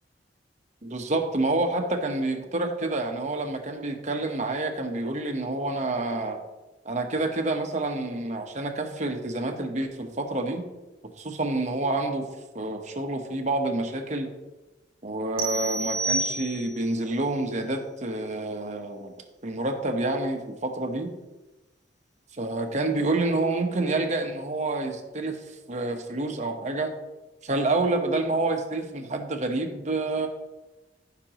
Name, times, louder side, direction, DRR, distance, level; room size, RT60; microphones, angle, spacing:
voice 1, 0.8-6.4 6.8-10.6 11.2-12.3 12.5-14.3 15.0-19.1 19.4-21.1 22.3-26.9 27.4-30.3, right 2 dB, 40° right, 4 dB, 1.1 m, -28 dB
sound 1, 15.4-16.9, right 2 dB, 60° right, 1.2 m, -29 dB
15.0 x 6.0 x 3.0 m, 1.1 s
head